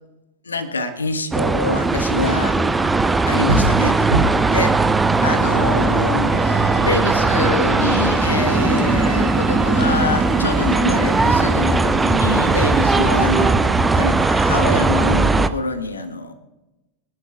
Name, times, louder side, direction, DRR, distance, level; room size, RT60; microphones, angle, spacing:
voice 1, 0.4-2.6 3.3-4.1 4.5-16.3, left 3 dB, 75° left, 9 dB, 1.3 m, -25 dB
sound 1, 1.3-15.5, right 3 dB, 10° right, 0.5 m, -18 dB
sound 2, 1.6-6.4, right 2 dB, 75° right, 4.7 m, -27 dB
sound 3, 6.3-13.5, right 2 dB, 25° right, 3.7 m, -30 dB
24.0 x 11.5 x 2.4 m, 1.0 s
figure-of-eight pair, 90°, 0 cm